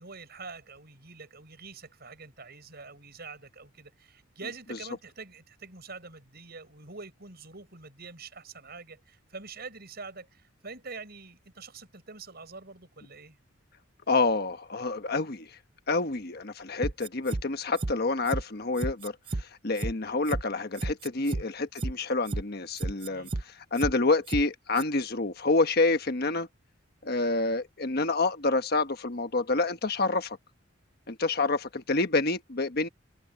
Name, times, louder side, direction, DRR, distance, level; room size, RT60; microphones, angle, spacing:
voice 1, 0.0-13.4 21.3-21.5 23.1-23.3, right 4 dB, 50° right, 6.6 m, -45 dB
voice 2, 14.1-15.5 15.9-19.1 19.4-26.5 27.0-30.4 31.1-32.9, left 3 dB, 50° left, 1.3 m, -28 dB
sound 1, 16.8-17.4 17.8-17.9 18.3-18.4 18.8-19.4 19.8-19.9 20.3-20.4 20.8-21.4 21.8-21.9 22.3-22.4 22.8-23.4 23.8-23.9 24.3-24.4 24.8-24.9, right 2 dB, 25° right, 0.5 m, -31 dB
head